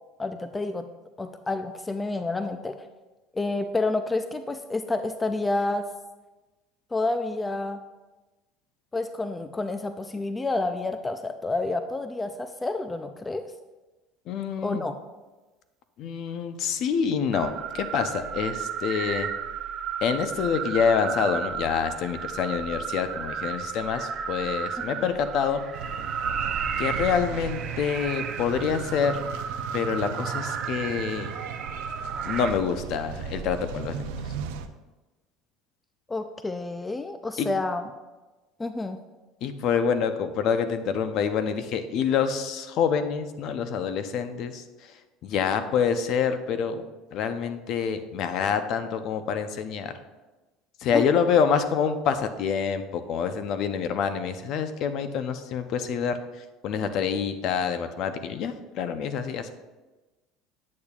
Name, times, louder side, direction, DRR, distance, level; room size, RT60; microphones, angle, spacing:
voice 1, 0.2-0.9 1.2-2.9 3.3-5.9 6.9-7.8 8.9-13.5 14.6-15.0 24.8-25.0 36.1-37.9 38.6-39.0 50.9-51.1, left 2 dB, 10° left, 8 dB, 0.3 m, -29 dB
voice 2, 14.3-14.8 16.0-19.3 20.0-25.6 26.8-29.2 29.7-31.3 32.2-34.2 37.4-37.5 39.4-44.6 45.2-46.8 47.1-49.9 50.8-56.2 56.6-59.5, left 7 dB, 50° left, 9 dB, 0.6 m, -26 dB
sound 1, 17.3-32.5, right 7 dB, 35° right, 0.6 m, -33 dB
sound 2, 25.7-34.7, right 6 dB, 85° right, 0.5 m, -37 dB
8.6 x 8.4 x 2.4 m, 1.2 s
cardioid pair, 140°, 0 cm